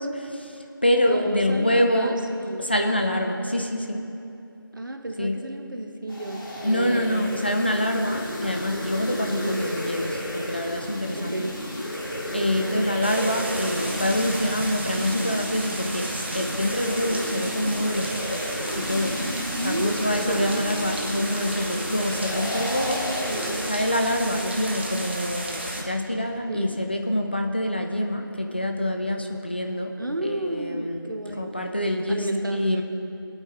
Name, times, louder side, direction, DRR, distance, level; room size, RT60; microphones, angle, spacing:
voice 1, 0.0-2.2 2.6-4.0 5.2-5.4 6.6-11.5 12.3-18.5 18.8-19.2 19.6-23.3 23.7-29.9 30.2-32.8, left 1 dB, 25° left, 3 dB, 0.5 m, -26 dB
voice 2, 1.0-2.7 4.7-7.3 9.3-9.7 11.0-11.6 12.5-12.9 19.5-20.0 20.3-20.7 23.2-23.7 24.2-24.5 26.5-26.8 30.0-31.5 32.1-32.8, right 1 dB, 60° right, 4 dB, 1.2 m, -31 dB
sound 1, 6.1-23.7, equal, 65° left, 2.4 m, -32 dB
sound 2, 13.0-25.8, right 1 dB, 30° right, 0.9 m, -34 dB
21.0 x 8.8 x 3.1 m, 2.7 s
figure-of-eight pair, 170°, 12 cm